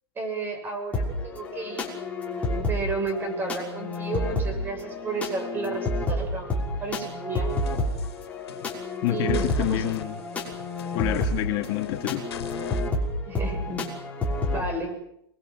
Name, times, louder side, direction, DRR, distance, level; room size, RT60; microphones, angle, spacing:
voice 1, 0.2-1.9 2.7-7.5 9.0-9.9 13.3-13.9 14.5-14.9, right 3 dB, 15° right, 5 dB, 7.2 m, -32 dB
sound 1, 0.9-14.6, left 1 dB, 10° left, 5.9 m, -30 dB
sound 2, 7.5-8.9 9.3-12.9, left 9 dB, 80° left, 3.0 m, -41 dB
voice 2, 9.0-10.2 10.9-12.2, left 13 dB, 35° left, 3 dB, 2.4 m, -27 dB
29.5 x 22.5 x 7.8 m, 0.78 s
hypercardioid pair, 155°, 13 cm